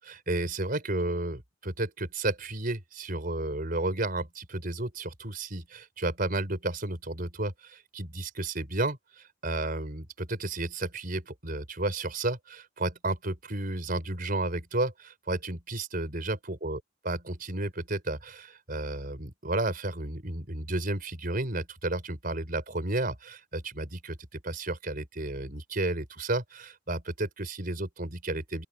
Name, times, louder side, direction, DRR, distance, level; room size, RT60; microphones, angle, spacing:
voice 1, 0.0-16.8 17.0-28.7, right 2 dB, 50° right, 4.7 m, -32 dB
open air
head